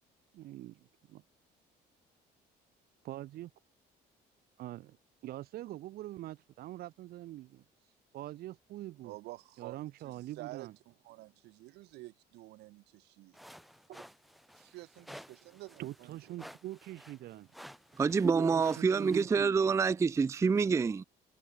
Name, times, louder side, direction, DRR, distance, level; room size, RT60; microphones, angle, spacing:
voice 1, 0.3-1.2 3.0-3.5 4.6-5.0 5.2-7.6 8.1-9.1 9.6-10.7 13.9-14.0 15.8-17.5 18.5-19.5, right 15 dB, 65° right, 0.7 m, -44 dB
voice 2, 9.0-9.7 10.0-13.4 14.6-16.2 18.2-18.5, right 19 dB, 85° right, 1.4 m, -49 dB
sound 1, 13.3-19.2, equal, ahead, 3.5 m, -54 dB
voice 3, 18.0-21.0, right 5 dB, 15° right, 0.4 m, -27 dB
cardioid pair, 110°, 17 cm